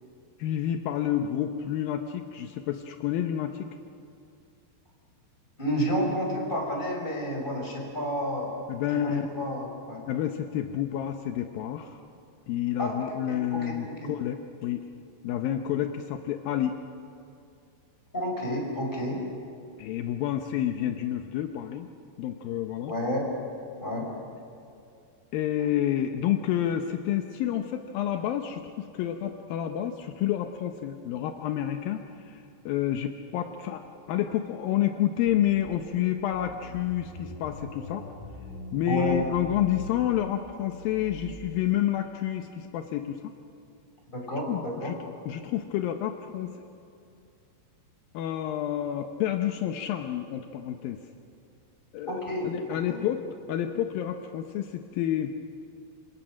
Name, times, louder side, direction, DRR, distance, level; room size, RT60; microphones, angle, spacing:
voice 1, 0.4-3.8 8.7-9.3 10.1-12.0 12.5-14.9 15.2-16.8 19.8-21.9 22.2-22.9 25.3-33.8 34.1-38.0 38.7-43.3 44.5-46.6 48.1-51.0 51.9-53.2 53.5-55.4, left 11 dB, 85° left, 6 dB, 2.0 m, -29 dB
voice 2, 5.6-8.5 8.9-10.0 12.8-14.1 18.1-19.2 22.9-23.3 23.8-24.1 38.9-39.3 44.1-44.9 52.1-53.0, equal, 10° left, 0 dB, 5.2 m, -30 dB
sound 1, 35.3-35.9 36.3-41.4, left 2 dB, 65° left, 8.9 m, -42 dB
28.0 x 26.0 x 6.3 m, 2.5 s
omnidirectional pair, 5.3 m